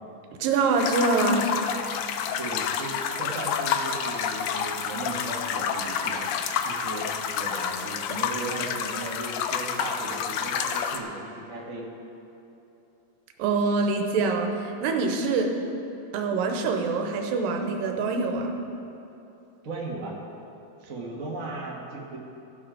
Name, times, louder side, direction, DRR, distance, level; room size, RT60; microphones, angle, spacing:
voice 1, 0.4-1.5 13.4-15.5 16.1-18.5, right 3 dB, 85° right, 3 dB, 2.6 m, -25 dB
sound 1, 0.8-11.0, left 7 dB, 80° left, 1.8 m, -29 dB
voice 2, 2.4-6.2 6.6-7.1 7.3-11.9 19.6-20.2 20.8-22.2, right 2 dB, 50° right, -3 dB, 0.9 m, -36 dB
15.5 x 7.7 x 5.0 m, 2.9 s
omnidirectional pair, 4.0 m